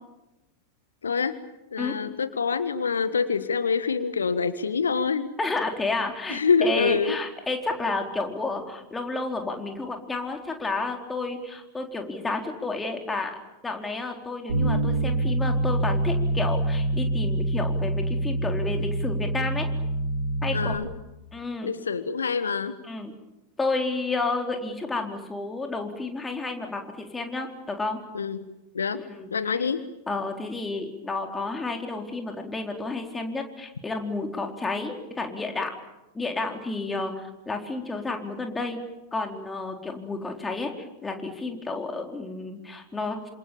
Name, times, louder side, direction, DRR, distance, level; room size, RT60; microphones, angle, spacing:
voice 1, 1.0-1.3 1.7-5.3 6.3-7.2 20.5-20.9 21.6-22.8 28.1-28.4 28.7-29.0 29.3-29.8, left 5 dB, 70° left, 13 dB, 1.3 m, -25 dB
voice 2, 5.4-13.4 13.6-19.7 20.4-20.7 21.3-21.7 22.8-23.1 23.6-28.0 29.1-29.3 30.1-35.7 36.1-38.8 39.1-40.7 41.0-43.2, left 3 dB, 10° left, 3 dB, 4.2 m, -31 dB
Bass guitar, 14.5-20.7, right 1 dB, 75° right, 7.2 m, -26 dB
28.5 x 27.0 x 7.2 m, 0.98 s
figure-of-eight pair, 90°, 0 cm